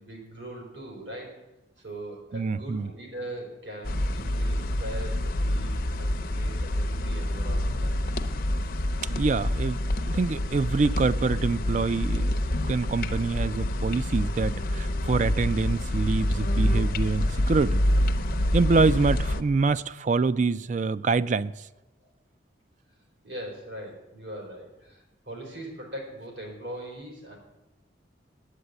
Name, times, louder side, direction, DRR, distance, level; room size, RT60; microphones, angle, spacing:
voice 1, 0.0-1.4 1.8-8.1 22.0-22.1 23.2-27.4, right 1 dB, 75° right, 4.0 m, -41 dB
voice 2, 2.3-2.9 9.1-12.4 12.6-17.8 18.5-21.5, right 4 dB, 40° right, 0.3 m, -25 dB
sound 1, 3.8-19.4, left 1 dB, 50° left, 0.6 m, -27 dB
9.9 x 8.7 x 8.1 m
head